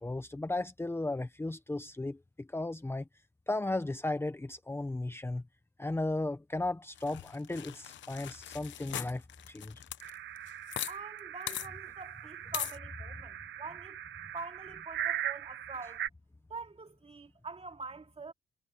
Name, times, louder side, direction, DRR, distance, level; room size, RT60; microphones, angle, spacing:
voice 1, 0.0-3.1 3.5-5.4 5.8-9.2 9.5-9.8, left 2 dB, 10° left, 1.1 m, -35 dB
sound 1, 7.0-10.9 11.2-11.3 11.5-11.7 12.5-12.8, left 12 dB, 70° left, 0.9 m, -40 dB
sound 2, 10.0-16.1, right 11 dB, 70° right, 1.3 m, -40 dB
voice 2, 10.9-14.0 14.3-16.1 16.5-18.3, right 4 dB, 30° right, 3.1 m, -45 dB
cardioid pair, 90°, 20 cm